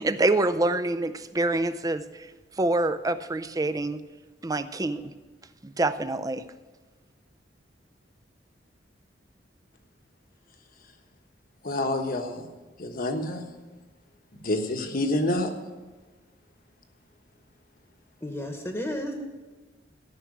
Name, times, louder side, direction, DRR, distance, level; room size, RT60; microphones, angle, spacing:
voice 1, 0.0-2.3 2.6-4.0 4.4-5.1 5.6-6.4, right 2 dB, 20° right, 11 dB, 0.5 m, -26 dB
voice 2, 11.6-12.5 12.8-13.4 14.4-15.5, left 1 dB, 50° left, 5 dB, 1.2 m, -27 dB
voice 3, 18.2-19.1, left 1 dB, 15° left, 3 dB, 1.2 m, -32 dB
13.5 x 6.0 x 8.5 m, 1.3 s
head